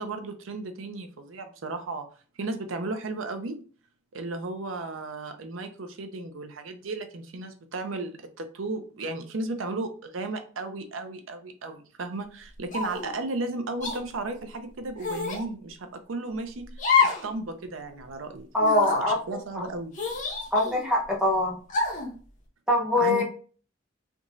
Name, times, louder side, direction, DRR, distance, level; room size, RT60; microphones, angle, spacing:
voice 1, 0.0-2.1 2.4-3.6 4.1-16.7 17.0-18.5 18.9-19.9 23.0-23.2, right 2 dB, 80° right, 7 dB, 0.6 m, -34 dB
sound 1, 12.7-13.1 13.8-14.0 15.0-15.4 16.8-17.3 17.6-17.7 18.6-19.0 19.9-20.9 21.7-22.1, left 5 dB, 40° left, 0.8 m, -27 dB
voice 2, 18.5-19.1 19.5-19.6 20.5-21.6 22.7-23.2, left 1 dB, 5° right, -4 dB, 1.0 m, -23 dB
3.4 x 3.0 x 2.6 m, 0.39 s
head